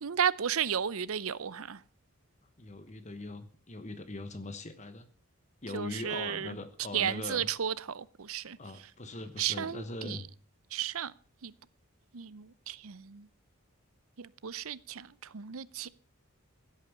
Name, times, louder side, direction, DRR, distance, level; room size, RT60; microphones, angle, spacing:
voice 1, 0.0-1.8 5.7-6.5 6.9-8.6 9.4-10.2 10.7-11.1 11.4-11.5 12.1-13.3 14.2-15.9, right 8 dB, 70° right, 0.6 m, -33 dB
voice 2, 2.6-5.1 5.6-7.5 8.6-10.3, left 2 dB, 30° left, 1.1 m, -41 dB
16.0 x 8.5 x 7.0 m
head